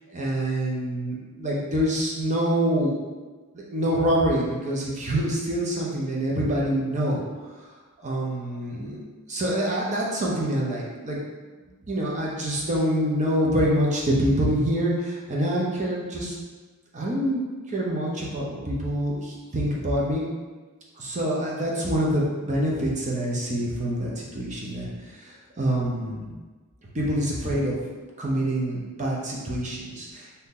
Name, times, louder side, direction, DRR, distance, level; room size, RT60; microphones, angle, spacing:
voice 1, 0.1-3.0 3.7-7.2 8.0-9.0 9.3-11.2 11.9-16.4 16.9-20.3 21.0-24.9 25.2-26.3 26.9-27.8 28.2-30.3, equal, 35° right, -4 dB, 0.6 m, -26 dB
2.8 x 2.7 x 3.7 m, 1.3 s
head